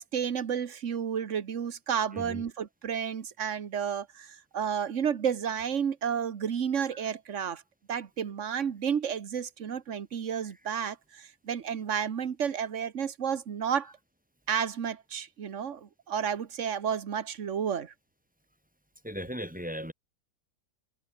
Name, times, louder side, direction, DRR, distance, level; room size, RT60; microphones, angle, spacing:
voice 1, 0.0-7.6 7.9-13.9 14.5-17.9, right 7 dB, 60° right, 1.5 m, -31 dB
voice 2, 2.1-2.4 6.9-7.0 19.0-19.9, equal, 5° right, 3.5 m, -37 dB
open air
omnidirectional pair, 1.5 m